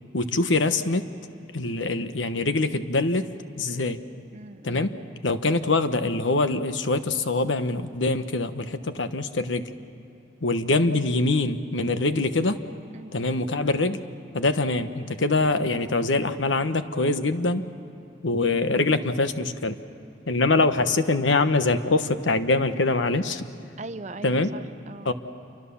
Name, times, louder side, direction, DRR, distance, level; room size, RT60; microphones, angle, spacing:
voice 1, 0.1-1.1 1.5-4.0 4.6-4.9 5.2-9.7 10.4-12.6 13.1-14.0 14.3-17.7 18.2-19.8 20.3-23.5 24.2-24.5 25.0-25.1, left 2 dB, 90° left, 10 dB, 1.2 m, -24 dB
voice 2, 4.3-4.9 12.9-13.2 23.8-25.1, right 2 dB, 40° right, 12 dB, 0.7 m, -40 dB
28.0 x 24.5 x 7.1 m, 2.9 s
head